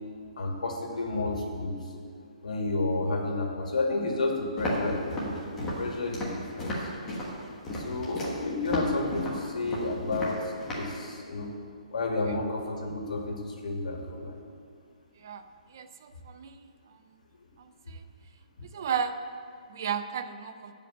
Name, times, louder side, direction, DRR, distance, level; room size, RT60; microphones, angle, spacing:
voice 1, 0.4-1.8 2.4-6.9 7.7-11.5 11.9-14.3, left 2 dB, 70° left, 1 dB, 2.1 m, -31 dB
Walk footsteps, 4.6-11.0, equal, 10° left, 1.3 m, -34 dB
voice 2, 15.7-16.6 17.9-18.0 18.7-19.2 19.7-20.7, right 7 dB, 30° right, 10 dB, 0.3 m, -33 dB
12.0 x 5.2 x 7.7 m, 2.2 s
hypercardioid pair, 180°, 4 cm